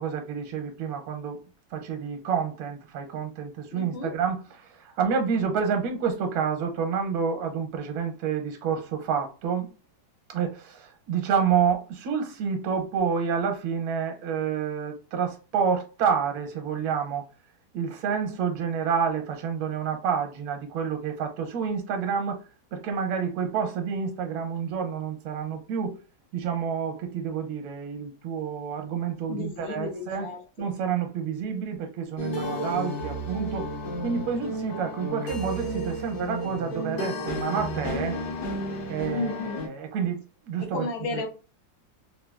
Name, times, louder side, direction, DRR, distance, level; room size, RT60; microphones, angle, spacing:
voice 1, 0.0-1.4 1.7-9.7 10.3-17.3 17.7-22.4 22.7-26.0 26.3-30.3 30.6-33.7 34.0-38.2 38.9-41.3, right 6 dB, 85° right, 1.5 m, -29 dB
voice 2, 3.7-4.1 29.3-30.7 39.1-39.7 40.7-41.3, left 3 dB, 75° left, 1.5 m, -33 dB
sound 1, 32.2-39.7, equal, 55° left, 1.4 m, -32 dB
3.8 x 2.5 x 2.2 m
omnidirectional pair, 2.1 m